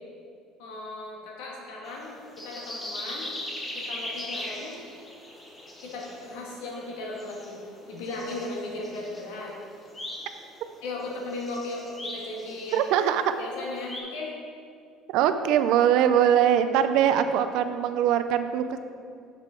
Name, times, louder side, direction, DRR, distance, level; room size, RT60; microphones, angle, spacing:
voice 1, 0.6-3.3 3.7-4.7 5.8-7.6 7.9-9.6 10.8-12.9 13.4-14.3, left 2 dB, 85° left, -2 dB, 1.6 m, -36 dB
sound 1, 1.8-14.0, left 1 dB, 10° left, 0.7 m, -40 dB
voice 2, 12.7-13.3 15.1-18.8, right 9 dB, 55° right, 10 dB, 0.4 m, -22 dB
6.6 x 6.5 x 3.7 m, 2.3 s
cardioid pair, 180°, 0 cm